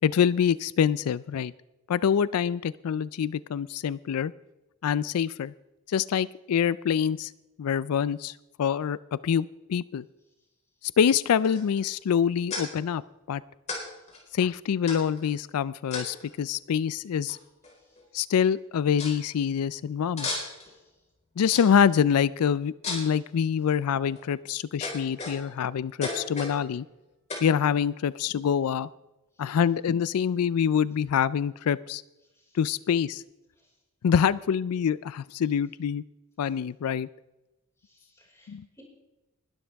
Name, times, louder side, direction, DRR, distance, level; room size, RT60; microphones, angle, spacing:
voice 1, 0.0-1.5 1.9-4.3 4.8-5.5 5.9-7.3 7.6-9.0 9.2-10.1 10.8-13.0 13.3-13.4 14.3-17.4 18.1-20.3 21.4-26.8 27.4-28.9 29.4-32.0 32.5-33.2 34.0-36.0 36.4-37.1 38.5-38.6, left 7 dB, 90° left, 19 dB, 0.4 m, -25 dB
sound 1, 11.4-11.8 12.5-12.6 13.7-13.8 14.1-14.2 14.9-15.2 15.9-16.3 17.3-17.4 17.6-18.0 18.4-18.5 19.0-19.2 20.2-20.7 21.5-21.9 22.8-23.2 23.9-24.2 24.8-25.6 26.0-26.6 27.3-27.5, left 3 dB, 30° left, 4.4 m, -34 dB
voice 2, 37.9-38.8, equal, 15° left, -3 dB, 5.1 m, -59 dB
21.0 x 12.5 x 3.5 m, 0.99 s
head